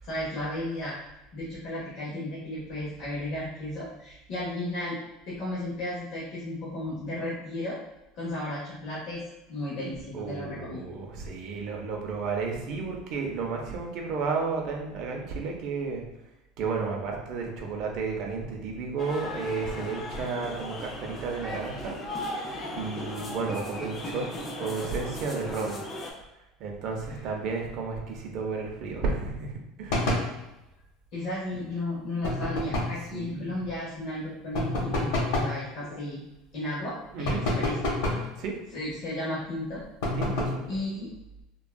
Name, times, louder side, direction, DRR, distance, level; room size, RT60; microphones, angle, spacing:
voice 1, 0.0-1.0 1.3-5.0 5.3-7.8 8.1-9.2 9.5-10.9 27.1-27.3 31.1-36.2 36.5-37.8 38.1-38.3 38.7-39.8 40.7-41.1, left 1 dB, 50° left, -7 dB, 0.8 m, -34 dB
voice 2, 10.1-16.0 16.6-22.0 22.7-24.2 24.6-25.8 26.6-30.1 33.1-33.6 37.1-37.4 38.4-38.5 40.1-40.6, right 4 dB, 45° right, 1 dB, 0.6 m, -32 dB
sound 1, 19.0-26.1, left 1 dB, 25° left, 0.4 m, -37 dB
sound 2, 29.9-30.3 32.2-33.0 34.5-35.6 37.2-38.3 40.0-40.6, left 1 dB, 75° left, 0.9 m, -28 dB
3.5 x 2.3 x 2.2 m, 0.94 s
cardioid pair, 160°, 0 cm